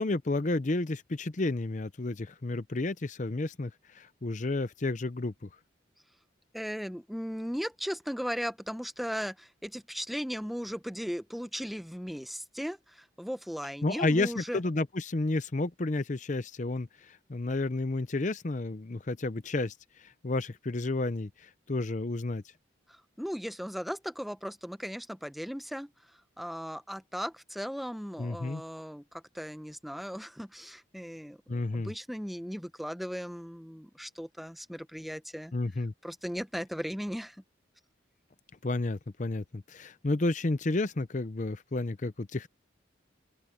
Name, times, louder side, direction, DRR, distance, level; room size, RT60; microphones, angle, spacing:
voice 1, 0.0-5.5 13.8-22.4 28.2-28.6 31.5-31.9 35.5-35.9 38.6-42.5, left 2 dB, 40° left, 0.6 m, -31 dB
voice 2, 6.5-14.6 22.9-35.5 36.0-37.4, equal, ahead, 0.7 m, -37 dB
open air
head